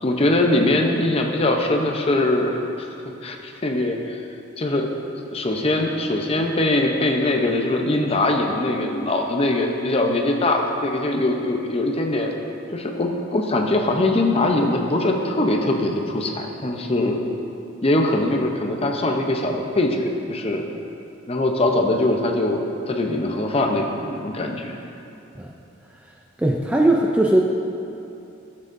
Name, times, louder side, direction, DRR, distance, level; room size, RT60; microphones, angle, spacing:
voice 1, 0.0-2.6 3.2-4.2 4.6-4.9 5.3-12.3 12.7-17.2 17.8-20.6 21.3-24.8, left 2 dB, 30° left, 2 dB, 0.6 m, -22 dB
voice 2, 26.4-27.4, right 1 dB, 5° right, 0 dB, 0.3 m, -18 dB
13.0 x 7.6 x 2.6 m, 2.7 s
head